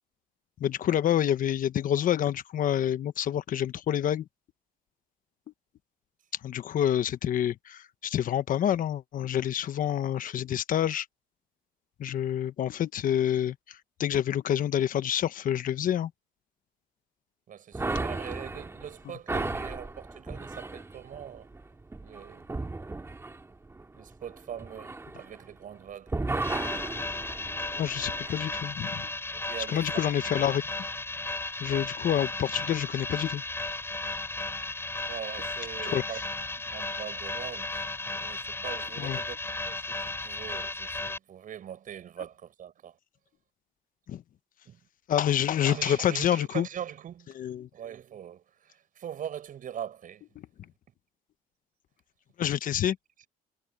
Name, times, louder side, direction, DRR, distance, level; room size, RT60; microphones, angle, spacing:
voice 1, 0.6-4.3 6.4-11.1 12.0-16.1 27.8-29.0 29.7-30.6 31.6-33.4 35.8-36.0 39.0-39.2 44.1-44.2 45.1-46.7 47.4-47.7 52.4-53.0, left 10 dB, 55° left, 1.1 m, -27 dB
voice 2, 17.5-21.5 22.0-22.5 24.0-26.2 29.3-30.1 35.1-36.2 36.6-43.0 44.6-44.8 45.6-47.4 47.7-50.2 50.6-50.9, right 9 dB, 55° right, 6.7 m, -42 dB
sound 1, 17.7-25.8 26.1-28.4, right 3 dB, 15° right, 1.9 m, -35 dB
sound 2, 26.4-41.2, left 2 dB, 15° left, 5.3 m, -35 dB
cardioid pair, 110°, 17 cm